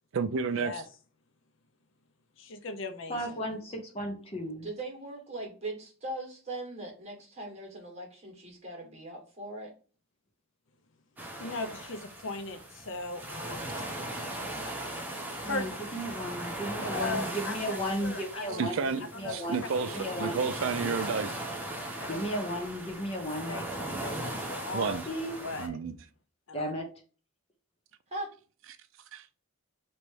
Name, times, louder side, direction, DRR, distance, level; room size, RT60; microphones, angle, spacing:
voice 1, 0.1-0.8 18.6-21.4 24.7-25.1 25.6-26.0 29.1-29.3, right 5 dB, 65° right, 0.4 m, -31 dB
voice 2, 2.4-3.4 11.4-13.7 15.4-15.8 16.9-18.6 19.2-19.3 22.0-22.2 23.5-23.6 24.0-25.0 25.4-25.7 26.5-26.7, left 3 dB, 60° left, 0.6 m, -38 dB
voice 3, 3.1-4.7 15.4-18.9 19.2-20.4 22.1-23.7 25.1-25.4 26.5-26.9, equal, 30° left, 0.9 m, -35 dB
voice 4, 4.6-9.7 28.1-28.3, right 2 dB, 30° right, 1.6 m, -40 dB
sound 1, 11.2-25.7, right 1 dB, 10° right, 0.8 m, -38 dB
3.1 x 3.0 x 4.6 m
head